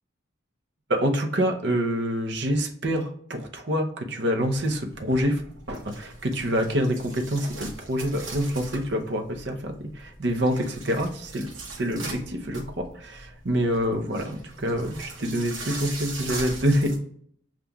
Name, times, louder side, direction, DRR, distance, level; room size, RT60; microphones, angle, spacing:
voice 1, 0.9-5.4 5.7-11.5 11.8-16.9, equal, 60° right, 4 dB, 0.7 m, -26 dB
sound 1, 4.4-17.0, right 2 dB, 80° right, 0.9 m, -41 dB
6.9 x 2.4 x 2.3 m, 0.63 s
head